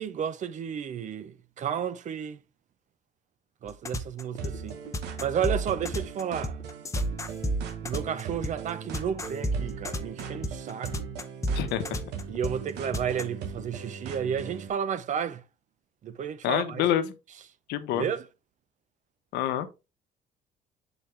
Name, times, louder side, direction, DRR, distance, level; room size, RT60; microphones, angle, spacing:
voice 1, 0.0-2.4 3.6-4.8 5.2-6.6 7.8-11.1 12.3-15.4 16.0-16.8 17.9-18.2, right 8 dB, 45° right, 0.6 m, -32 dB
sound 1, 3.7-13.2, equal, 20° left, 0.7 m, -30 dB
sound 2, 4.4-14.7, right 6 dB, 85° right, 1.1 m, -39 dB
voice 2, 11.5-12.0 16.4-17.1 17.7-18.0 19.3-19.7, left 11 dB, 85° left, 0.8 m, -27 dB
7.2 x 4.0 x 3.3 m
cardioid pair, 110°, 17 cm